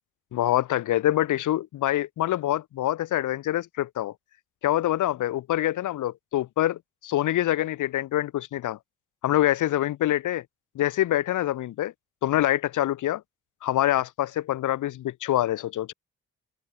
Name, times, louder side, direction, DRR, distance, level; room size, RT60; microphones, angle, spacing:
voice 1, 0.3-4.1 4.6-8.8 9.2-10.4 10.8-11.9 12.2-13.2 13.6-15.9, left 13 dB, 60° left, 0.6 m, -25 dB
supercardioid pair, 45°, 34 cm